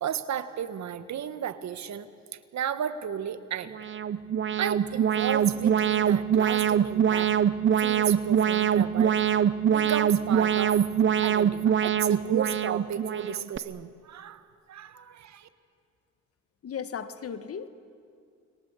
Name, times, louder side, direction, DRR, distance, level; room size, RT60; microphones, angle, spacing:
voice 1, 0.0-3.8 4.6-7.3 7.8-9.2 9.7-10.9 11.2-15.5, right 9 dB, 65° right, 12 dB, 1.5 m, -34 dB
Alarm, 3.7-13.6, right 8 dB, 40° right, 0.9 m, -24 dB
voice 2, 16.6-17.7, left 7 dB, 50° left, 11 dB, 1.6 m, -36 dB
30.0 x 22.0 x 8.3 m, 2.3 s
cardioid pair, 90°, 30 cm